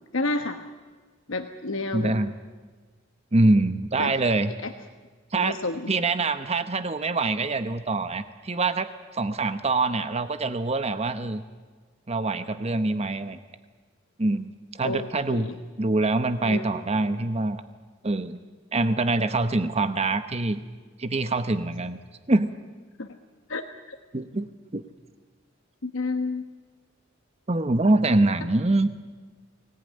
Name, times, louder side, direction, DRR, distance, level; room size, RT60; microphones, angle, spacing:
voice 1, 0.1-0.6 1.3-2.1 4.0-4.1 5.3-5.9 14.8-15.6 16.4-16.7 23.0-23.1 23.5-23.6 23.9-24.0 25.8-26.4, left 3 dB, 70° left, 7 dB, 1.2 m, -30 dB
voice 2, 1.9-2.3 3.3-4.5 5.3-5.6 5.9-11.4 12.1-13.4 14.2-15.5 15.8-17.6 18.0-18.4 18.7-20.6 21.0-22.0 22.3-22.5 24.1-24.5 24.7-24.8 27.5-28.9, right 2 dB, 30° right, 10 dB, 0.9 m, -24 dB
24.0 x 18.5 x 9.5 m, 1.4 s
head